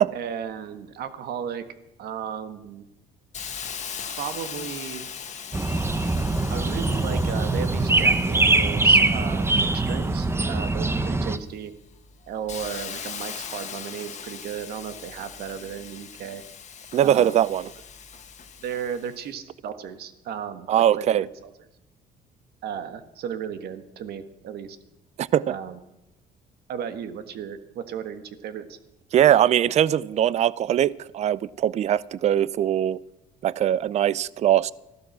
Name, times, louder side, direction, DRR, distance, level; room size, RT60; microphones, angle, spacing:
voice 1, 0.1-1.6 2.0-2.9 4.0-5.1 6.5-11.7 12.3-16.4 17.0-17.4 18.6-21.5 22.6-24.8 25.5-25.8 26.7-28.8, right 8 dB, 70° right, 10 dB, 1.5 m, -35 dB
Hiss, 3.3-10.9 11.4-19.2, left 7 dB, 45° left, 1.5 m, -40 dB
sound 1, 5.5-11.4, right 2 dB, 15° right, 0.9 m, -22 dB
voice 2, 16.9-17.6 20.7-21.2 25.2-25.5 29.1-33.0 33.4-34.7, right 11 dB, 40° right, 22 dB, 0.4 m, -21 dB
15.0 x 12.0 x 6.1 m, 0.94 s
cardioid pair, 110°, 17 cm